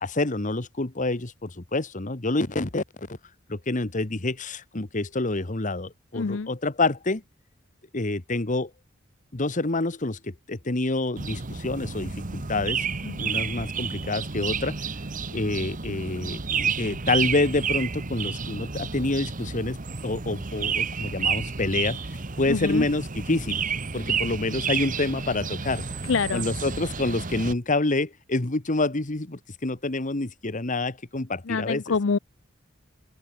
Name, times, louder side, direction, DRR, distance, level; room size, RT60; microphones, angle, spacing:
voice 1, 0.0-2.8 3.5-7.2 7.9-8.7 9.3-12.8 13.2-14.8 15.3-19.8 20.0-22.0 22.4-23.6 23.9-25.8 26.3-31.8, left 2 dB, 40° left, 1.4 m, -27 dB
voice 2, 6.1-6.5 13.0-13.4 22.5-22.9 26.1-26.5 31.5-32.2, left 4 dB, 70° left, 0.6 m, -26 dB
sound 1, 11.2-27.5, right 6 dB, 40° right, 1.2 m, -31 dB
open air
head